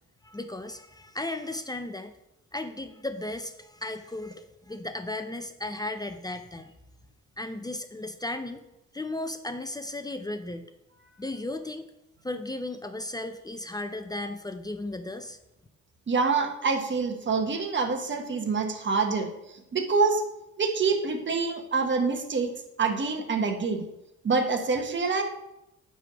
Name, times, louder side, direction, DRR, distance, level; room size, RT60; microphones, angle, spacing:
voice 1, 0.2-2.1 2.5-6.7 7.4-8.6 8.9-10.7 11.2-11.9 12.2-15.4, left 2 dB, 15° left, 8 dB, 0.5 m, -35 dB
voice 2, 16.1-20.2 20.6-22.5 22.8-23.8 24.2-25.2, right 4 dB, 40° right, 5 dB, 1.2 m, -26 dB
9.3 x 3.5 x 6.0 m, 0.89 s
cardioid pair, 90°, 30 cm